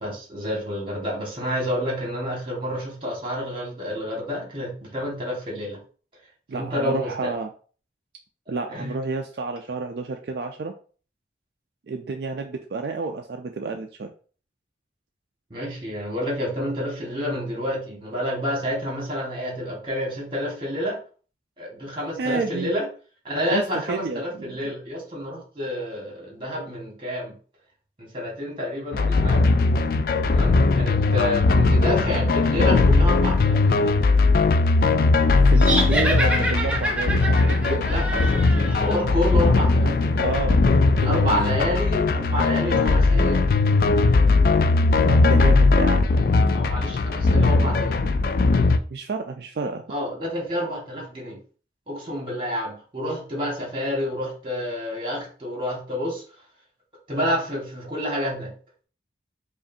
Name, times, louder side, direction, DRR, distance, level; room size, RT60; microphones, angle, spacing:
voice 1, 0.0-5.8 6.5-7.3 8.5-8.9 15.5-21.0 21.6-22.8 23.2-27.3 28.0-29.5 30.2-33.9 37.7-40.3 41.0-43.4 46.5-48.0 49.9-51.4 51.9-56.2 57.1-58.5, equal, 30° right, -2 dB, 1.6 m, -29 dB
voice 2, 6.5-7.5 8.5-10.7 11.9-14.1 22.2-22.7 23.5-24.6 35.4-38.3 40.2-41.3 45.1-46.6 48.9-49.8, right 3 dB, 65° right, 4 dB, 0.4 m, -30 dB
sound 1, 28.9-48.8, left 3 dB, 55° left, 0.3 m, -19 dB
sound 2, 35.6-39.0, right 1 dB, 5° right, 0.7 m, -27 dB
5.0 x 2.5 x 2.6 m, 0.40 s
head